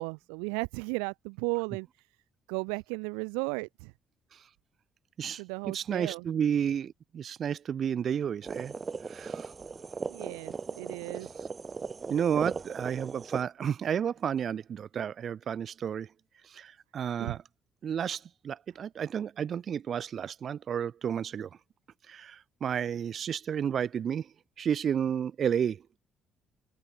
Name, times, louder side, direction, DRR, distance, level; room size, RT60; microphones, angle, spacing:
voice 1, 0.0-1.9 2.5-3.9 5.4-6.3 10.1-11.3 17.2-17.4, right 40 dB or more, 85° right, 0.3 m, -35 dB
voice 2, 5.2-8.7 9.1-9.5 12.1-16.1 16.5-17.4 17.8-21.5 22.1-24.3 24.6-25.8, right 8 dB, 55° right, 1.4 m, -31 dB
sound 1, 8.4-13.4, right 4 dB, 35° right, 1.9 m, -38 dB
hypercardioid pair, 55°, 0 cm